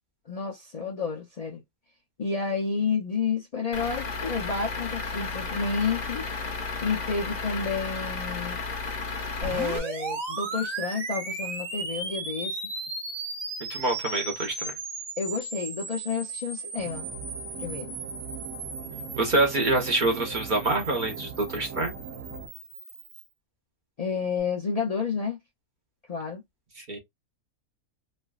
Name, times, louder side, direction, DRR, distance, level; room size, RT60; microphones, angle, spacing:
voice 1, 0.3-1.6 2.2-6.2 6.8-8.6 9.4-12.6 15.2-17.1 17.6-18.0 24.0-25.4 26.1-26.4, left 5 dB, 90° left, 0.3 m, -30 dB
Truck / Idling, 3.7-9.8, left 4 dB, 45° left, 0.6 m, -33 dB
sound 1, 9.4-23.3, right 3 dB, 60° right, 1.3 m, -36 dB
voice 2, 13.7-14.5 19.2-21.9 26.9-27.0, right 2 dB, 40° right, 0.9 m, -25 dB
sound 2, 16.8-22.5, right 7 dB, 85° right, 1.2 m, -40 dB
3.2 x 2.4 x 2.3 m
omnidirectional pair, 1.5 m